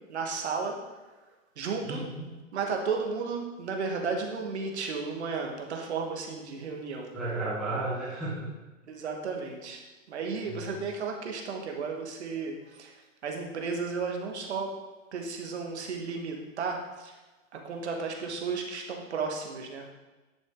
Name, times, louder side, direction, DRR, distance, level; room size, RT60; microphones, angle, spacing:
voice 1, 0.1-0.8 1.6-2.0 2.5-7.1 8.9-9.8 10.1-12.9 13.2-14.8 15.1-17.1 17.5-19.9, right 4 dB, 55° right, 2 dB, 1.7 m, -33 dB
voice 2, 1.8-2.3 7.1-8.5 10.5-10.8, right 2 dB, ahead, -10 dB, 0.9 m, -33 dB
10.5 x 6.4 x 3.8 m, 1.2 s
hypercardioid pair, 170°, 40 cm